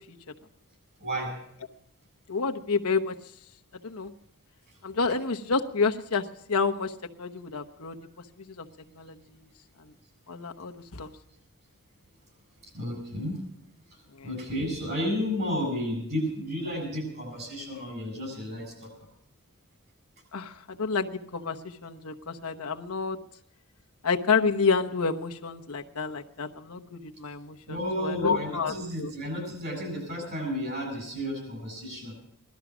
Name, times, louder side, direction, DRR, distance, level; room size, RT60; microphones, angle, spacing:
voice 1, 1.0-1.3 12.6-13.4 13.9-18.9 27.7-32.1, equal, 50° right, 4 dB, 7.7 m, -32 dB
voice 2, 2.3-3.1 3.8-4.1 4.8-6.2 6.5-6.9 7.2-8.0 8.6-8.7 8.9-9.4 10.3-11.1 14.2-14.3 20.3-21.6 21.8-23.2 24.0-29.1, left 4 dB, 90° left, 5 dB, 1.0 m, -29 dB
17.5 x 12.5 x 6.1 m, 0.75 s
head